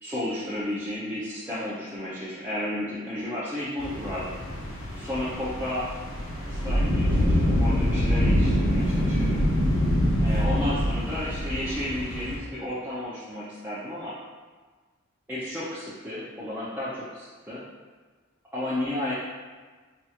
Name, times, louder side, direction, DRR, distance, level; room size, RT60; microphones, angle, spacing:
voice 1, 0.0-4.3 4.9-5.9 6.5-9.4 10.2-14.1 15.3-17.6 18.5-19.1, left 1 dB, 10° right, -11 dB, 0.5 m, -32 dB
sound 1, 3.8-12.4, equal, 65° left, 0.8 m, -25 dB
4.5 x 2.3 x 2.8 m, 1.4 s
head